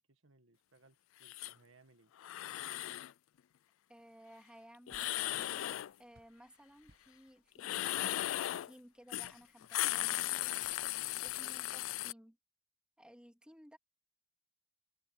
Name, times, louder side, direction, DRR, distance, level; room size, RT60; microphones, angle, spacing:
voice 1, 0.0-2.1, right 3 dB, 70° right, 1.9 m, -66 dB
sound 1, 1.2-1.5 2.2-3.1 4.9-5.9 7.6-8.7 9.1-9.3 9.6-12.1, left 15 dB, 70° left, 0.3 m, -37 dB
Guitar, 1.4-4.2, left 8 dB, 55° left, 5.0 m, -88 dB
voice 2, 3.9-8.2 8.6-10.8 11.2-12.4 13.0-13.8, equal, 5° right, 2.7 m, -58 dB
sound 2, 4.9-11.6, right 1 dB, 50° right, 6.2 m, -71 dB
head